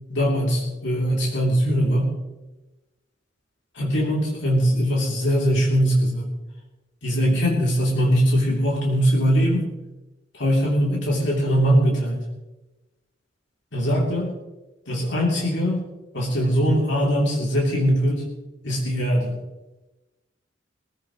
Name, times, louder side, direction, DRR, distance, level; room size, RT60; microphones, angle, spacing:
voice 1, 0.1-2.1 3.7-6.3 7.0-9.7 10.4-12.2 13.7-14.3 14.9-15.8 16.1-18.3 18.6-19.3, equal, 70° left, -4 dB, 3.2 m, -21 dB
19.5 x 16.0 x 3.1 m, 1.1 s
head